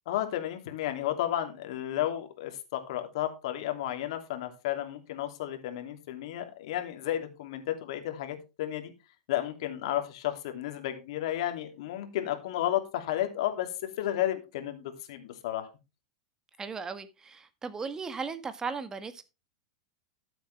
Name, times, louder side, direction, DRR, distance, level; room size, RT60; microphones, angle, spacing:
voice 1, 0.1-8.9 9.3-13.7 14.0-15.7, left 12 dB, 65° left, 2.7 m, -32 dB
voice 2, 16.6-19.2, right 5 dB, 20° right, 1.6 m, -37 dB
13.5 x 7.9 x 3.4 m
hypercardioid pair, 100°, 3 cm